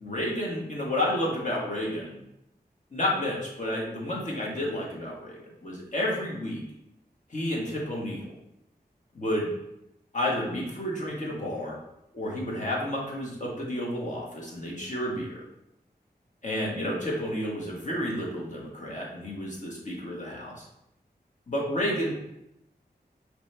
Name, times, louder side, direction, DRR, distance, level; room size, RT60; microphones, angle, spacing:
voice 1, 0.0-2.2 2.9-6.6 7.3-8.3 9.1-9.5 10.1-11.8 12.1-15.4 16.4-20.7 21.5-22.1, left 1 dB, 45° left, -3 dB, 1.4 m, -31 dB
5.0 x 3.1 x 3.3 m, 0.83 s
wide cardioid pair, 65°, 17 cm